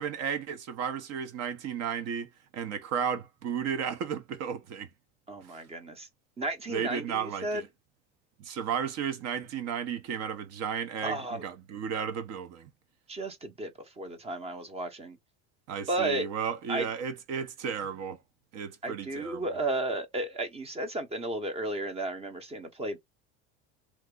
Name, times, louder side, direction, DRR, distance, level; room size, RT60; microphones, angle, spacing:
voice 1, 0.0-4.9 5.5-5.6 6.7-7.7 8.4-12.7 15.7-18.2 18.5-19.6, right 7 dB, 55° right, 0.9 m, -34 dB
voice 2, 5.3-6.1 6.4-7.6 11.0-11.4 13.1-13.7 14.0-15.2 15.9-16.3 16.7-16.9 18.8-23.0, right 2 dB, 20° right, 0.8 m, -33 dB
3.1 x 2.1 x 3.6 m
supercardioid pair, 120°, 32 cm